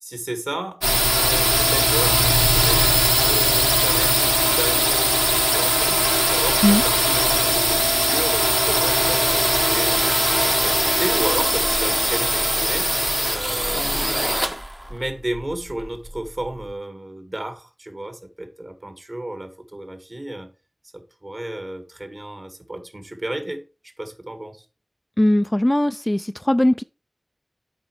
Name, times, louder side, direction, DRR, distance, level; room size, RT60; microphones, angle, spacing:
voice 1, 0.0-0.8 1.1-10.1 10.4-12.9 13.3-13.8 14.9-20.5 20.9-23.6 24.0-24.6, right 1 dB, 45° right, 1.9 m, -32 dB
sound 1, 0.8-16.5, equal, 10° right, 0.8 m, -20 dB
voice 2, 25.2-26.8, left 1 dB, 20° left, 0.4 m, -19 dB
7.9 x 5.3 x 4.7 m
wide cardioid pair, 50°, 0 cm